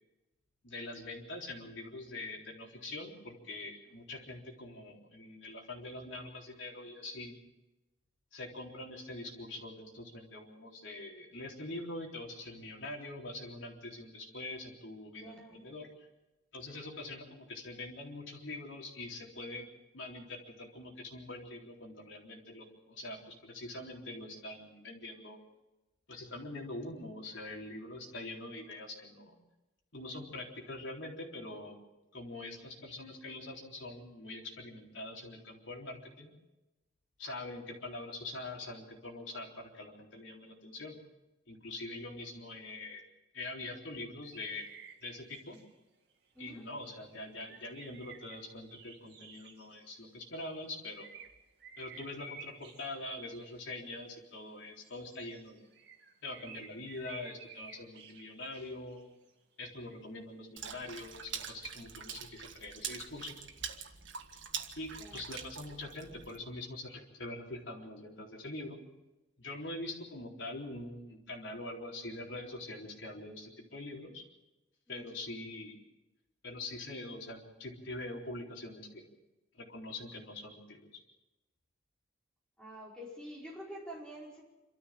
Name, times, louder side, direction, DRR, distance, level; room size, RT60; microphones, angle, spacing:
voice 1, 0.6-7.4 8.3-16.1 16.5-19.7 19.9-25.4 26.1-29.4 29.9-31.8 32.1-36.3 37.2-41.0 41.5-43.0 43.3-44.7 45.0-45.6 46.4-51.1 51.8-55.6 56.2-59.1 59.6-63.4 64.8-68.8 69.4-74.2 74.9-75.8 76.4-79.0 79.5-81.0, left 2 dB, 75° left, 0 dB, 3.9 m, -44 dB
voice 2, 15.2-15.7 46.4-46.6 65.0-65.2 74.9-75.2 82.6-84.4, equal, 5° left, -5 dB, 5.1 m, -47 dB
sound 1, 44.2-45.7 46.7-50.6 51.0-53.8 54.8-59.3 60.9-61.3, right 5 dB, 55° right, 2.4 m, -53 dB
Water / Splash splatter, 60.6-66.4, right 7 dB, 75° right, 1.7 m, -44 dB
27.0 x 13.5 x 7.6 m, 1.0 s
head